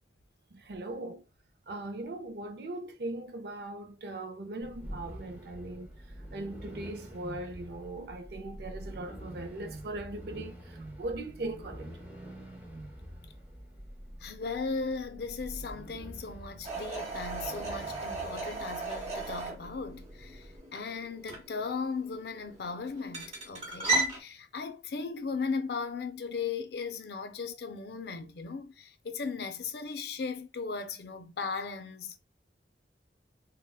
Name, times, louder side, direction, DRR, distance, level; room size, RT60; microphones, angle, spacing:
voice 1, 0.5-1.2 1.7-5.9 6.3-11.9, right 2 dB, 65° right, 0.5 m, -39 dB
sound 1, 4.6-20.6, equal, 10° right, 0.6 m, -46 dB
voice 2, 14.2-32.2, left 4 dB, 65° left, 0.4 m, -37 dB
sound 2, 16.6-24.2, right 3 dB, 40° right, 1.2 m, -36 dB
3.3 x 2.1 x 2.2 m
head